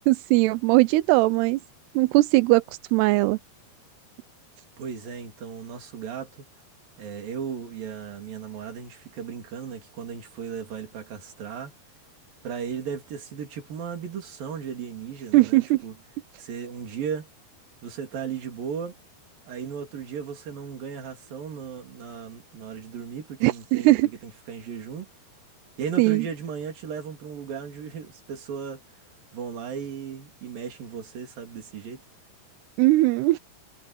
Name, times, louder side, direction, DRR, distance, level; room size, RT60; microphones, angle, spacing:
voice 1, 0.1-1.6 2.0-2.6 2.9-3.4 15.3-15.8 23.4-24.1 26.0-26.2 32.8-33.4, right 19 dB, 90° right, 2.7 m, -19 dB
voice 2, 4.8-6.5 7.0-11.7 12.4-16.0 16.4-17.3 17.8-19.0 19.5-25.1 25.8-28.8 29.3-32.0, right 7 dB, 60° right, 4.8 m, -36 dB
omnidirectional pair, 4.6 m